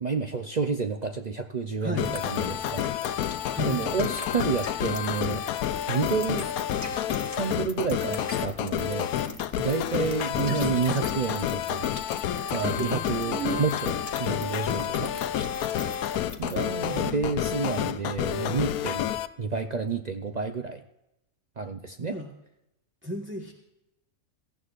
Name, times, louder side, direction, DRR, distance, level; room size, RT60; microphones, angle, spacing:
voice 1, 0.0-3.2 3.6-5.4 5.9-6.5 7.3-9.1 9.6-11.9 12.5-15.2 16.4-19.1 19.4-20.8 21.6-22.2, right 5 dB, 55° right, 6 dB, 0.4 m, -30 dB
voice 2, 1.8-2.2 3.5-3.8 10.0-10.1 10.4-11.0 12.5-13.1 16.8-17.9 22.1-22.3 23.0-23.5, equal, 10° right, -1 dB, 1.2 m, -35 dB
sound 1, 2.0-19.3, left 11 dB, 85° left, 1.1 m, -29 dB
sound 2, 2.0-16.7, left 3 dB, 25° left, 1.3 m, -42 dB
sound 3, 6.8-7.7 7.9-8.1 8.4-8.6 8.9-9.0 9.2-9.4 10.0-11.1 11.8-11.9 12.2-12.3 12.5-13.7 14.6-15.6, right 10 dB, 75° right, 1.0 m, -40 dB
18.0 x 15.0 x 2.5 m, 0.87 s
omnidirectional pair, 1.5 m